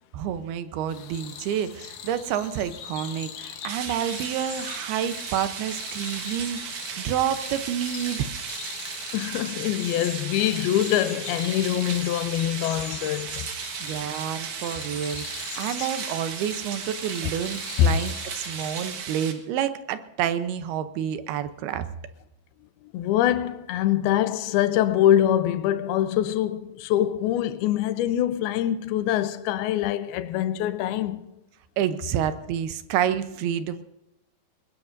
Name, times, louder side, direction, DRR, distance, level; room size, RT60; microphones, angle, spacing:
voice 1, 0.1-6.6 7.0-8.3 13.8-21.9 31.8-33.8, right 9 dB, 80° right, 2.8 m, -29 dB
sound 1, 0.9-19.0, left 8 dB, 65° left, 2.2 m, -41 dB
sound 2, 3.7-19.3, right 7 dB, 60° right, 2.6 m, -36 dB
voice 2, 9.1-13.5 17.8-18.0 22.9-31.2, left 11 dB, 85° left, 2.6 m, -24 dB
21.5 x 20.0 x 2.7 m
omnidirectional pair, 4.5 m